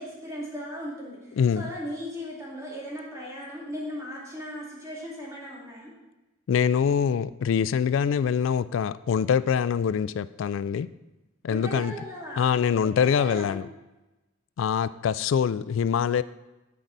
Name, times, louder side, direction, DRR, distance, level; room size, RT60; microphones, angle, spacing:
voice 1, 0.0-5.9 11.5-12.5 12.8-13.6, equal, 15° right, 2.4 m, -37 dB
voice 2, 1.4-1.7 6.5-10.9 11.4-11.9 12.4-13.6 14.6-16.2, left 7 dB, 70° left, 0.3 m, -24 dB
12.5 x 4.7 x 4.0 m
head